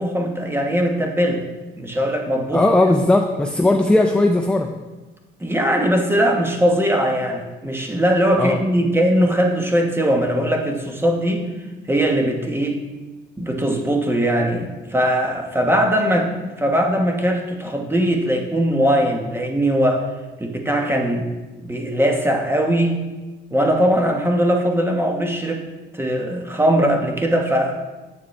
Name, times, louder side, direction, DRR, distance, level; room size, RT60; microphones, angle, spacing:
voice 1, 0.0-1.4 1.8-2.9 5.4-11.5 11.9-12.8 13.4-20.1 20.4-21.3 21.6-23.0 23.5-25.6 25.9-27.8, equal, 10° right, 2 dB, 1.2 m, -20 dB
voice 2, 2.5-4.7 8.4-8.6, left 2 dB, 5° left, 3 dB, 0.5 m, -17 dB
8.1 x 6.9 x 3.2 m, 1.2 s
cardioid pair, 90°, 20 cm